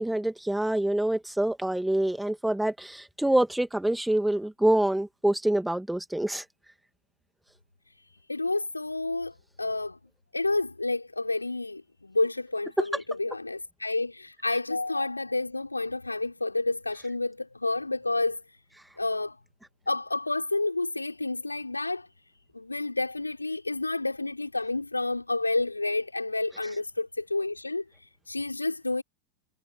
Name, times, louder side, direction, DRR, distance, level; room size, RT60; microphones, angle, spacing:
voice 1, 0.0-6.4, right 1 dB, 5° right, 2.6 m, -26 dB
voice 2, 8.3-10.0 10.3-18.4 19.0-19.4 19.9-22.1 22.5-29.0, left 2 dB, 80° left, 5.9 m, -30 dB
figure-of-eight pair, 90°, 0 cm